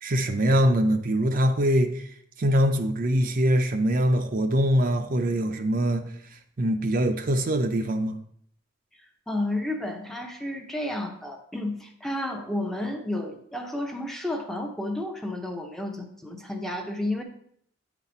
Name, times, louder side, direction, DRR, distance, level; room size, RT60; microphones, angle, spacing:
voice 1, 0.0-2.0 2.4-6.1 6.6-8.2, equal, 45° right, 5 dB, 0.5 m, -23 dB
voice 2, 9.3-17.2, left 1 dB, ahead, 3 dB, 0.6 m, -31 dB
8.9 x 4.1 x 4.3 m, 0.68 s
head